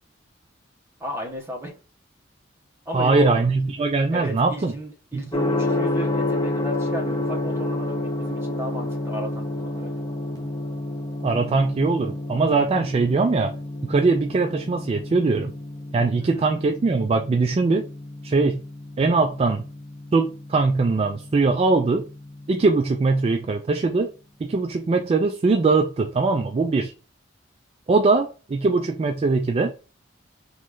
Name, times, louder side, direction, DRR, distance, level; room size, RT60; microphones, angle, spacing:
voice 1, 1.0-1.7 2.8-3.4 4.1-9.9 16.2-16.5, equal, 15° right, 1.1 m, -34 dB
voice 2, 2.9-4.7 5.1-5.2 11.2-13.5 13.8-15.5 15.9-17.8 18.2-18.6 19.0-19.7 20.1-22.0 22.5-24.1 24.4-26.9 27.9-29.7, right 3 dB, 30° right, 0.3 m, -21 dB
Gong, 5.3-23.2, left 1 dB, 20° left, 0.8 m, -30 dB
3.1 x 3.1 x 3.7 m
head